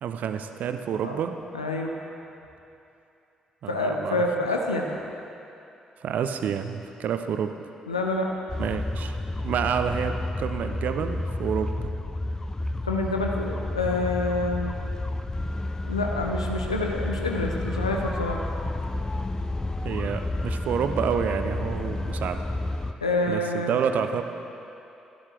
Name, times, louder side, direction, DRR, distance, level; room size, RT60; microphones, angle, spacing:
voice 1, 0.0-1.4 3.6-4.2 6.0-7.6 8.6-9.2 9.4-11.9 19.8-22.4 23.3-24.2, right 7 dB, 55° right, 8 dB, 0.6 m, -28 dB
voice 2, 1.5-1.9 3.7-4.9 7.9-8.3 12.8-14.7 15.8-18.4 23.0-23.8, left 2 dB, 85° left, 1 dB, 0.7 m, -27 dB
sound 1, 8.5-22.9, left 2 dB, 20° left, 0.6 m, -30 dB
13.0 x 11.5 x 3.3 m, 2.8 s
figure-of-eight pair, 40°, 3 cm